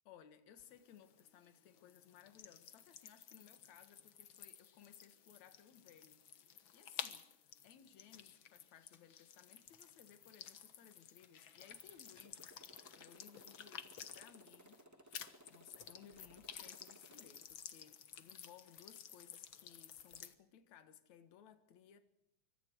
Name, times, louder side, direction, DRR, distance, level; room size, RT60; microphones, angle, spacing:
voice 1, 0.1-6.2 6.7-7.3 7.6-12.6 13.0-15.0 15.5-22.0, left 9 dB, 70° left, 2.9 m, -61 dB
sound 1, 0.6-14.8 15.1-20.3, left 8 dB, 50° left, 1.6 m, -53 dB
Motorcycle, 11.6-17.4, right 1 dB, 5° right, 2.1 m, -63 dB
26.0 x 24.5 x 4.7 m
omnidirectional pair, 3.5 m